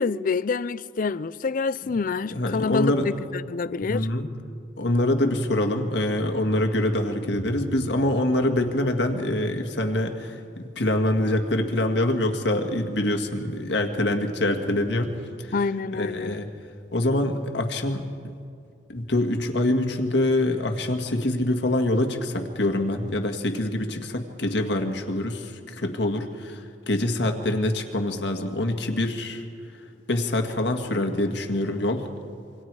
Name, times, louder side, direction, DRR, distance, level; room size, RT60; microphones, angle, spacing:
voice 1, 0.0-4.1 15.5-16.4, left 4 dB, 45° left, 0.4 m, -27 dB
voice 2, 2.3-3.1 3.9-4.3 4.8-15.1 15.4-15.5 15.9-16.5 16.9-18.3 18.9-29.5 30.1-32.1, left 1 dB, 65° left, 1.8 m, -25 dB
27.5 x 24.0 x 4.8 m
head